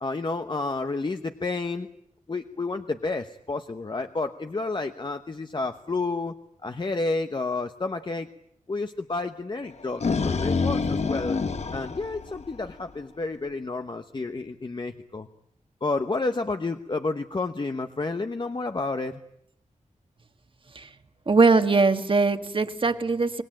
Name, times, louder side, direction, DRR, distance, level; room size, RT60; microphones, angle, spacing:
voice 1, 0.0-1.9 2.3-6.3 6.6-8.3 8.7-11.4 11.7-15.3 15.8-19.2, left 3 dB, 35° left, 7 dB, 1.0 m, -30 dB
sound 1, 9.7-12.9, left 4 dB, 55° left, 1.3 m, -27 dB
voice 2, 21.3-23.4, right 3 dB, 40° right, 8 dB, 1.7 m, -21 dB
25.5 x 19.5 x 9.1 m, 0.77 s
wide cardioid pair, 85°, 13 cm